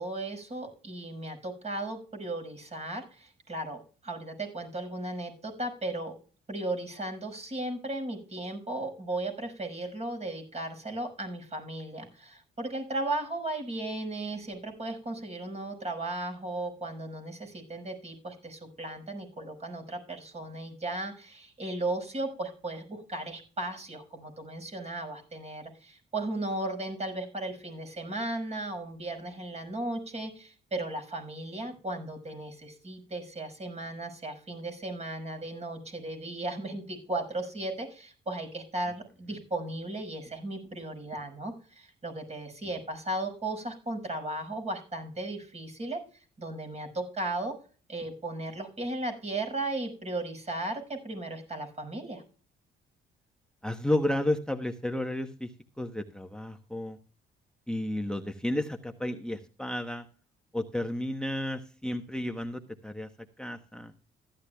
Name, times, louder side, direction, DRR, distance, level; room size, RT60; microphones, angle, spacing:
voice 1, 0.0-6.1 6.5-46.0 46.4-47.5 47.9-52.2, right 2 dB, 35° right, 5 dB, 6.0 m, -36 dB
voice 2, 53.6-55.5 55.8-57.0 57.7-60.1 60.5-63.1 63.4-63.9, left 1 dB, 5° left, 7 dB, 1.0 m, -32 dB
15.0 x 11.5 x 2.3 m, 0.37 s
cardioid pair, 90°, 20 cm